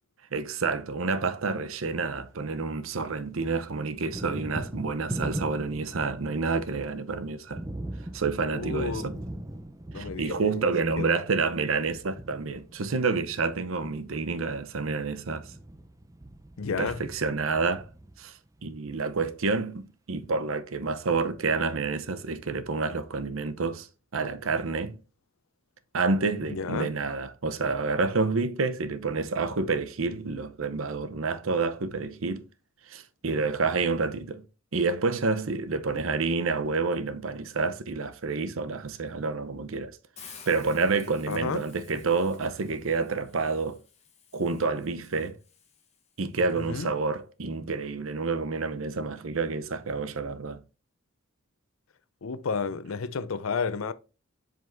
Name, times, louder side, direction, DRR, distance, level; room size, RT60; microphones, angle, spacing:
voice 1, 0.3-7.6 8.1-9.2 9.9-15.5 16.8-17.9 18.2-23.9 24.1-25.0 25.9-32.5 32.9-34.5 34.7-43.8 44.3-45.4 46.2-50.6, right 4 dB, 80° right, 0.7 m, -29 dB
Thunder, 1.9-3.1 3.4-18.6, right 1 dB, 15° right, 0.6 m, -40 dB
voice 2, 8.5-9.2 9.9-10.5 11.0-11.1 16.6-17.0 26.4-26.9 41.3-41.7 46.5-46.9 52.2-53.9, left 5 dB, 85° left, 0.6 m, -32 dB
Hiss, 40.2-46.2, left 6 dB, 35° left, 1.4 m, -53 dB
7.5 x 5.2 x 2.6 m
head